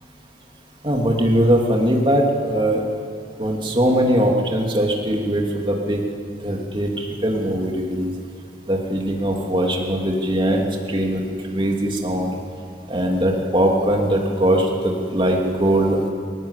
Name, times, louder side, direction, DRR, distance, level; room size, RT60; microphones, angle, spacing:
voice 1, 0.8-2.8 3.4-6.0 6.4-8.1 8.7-11.2 11.5-12.4 12.9-16.0, right 1 dB, 30° right, 0 dB, 2.8 m, -20 dB
21.5 x 18.5 x 8.3 m, 2.3 s
head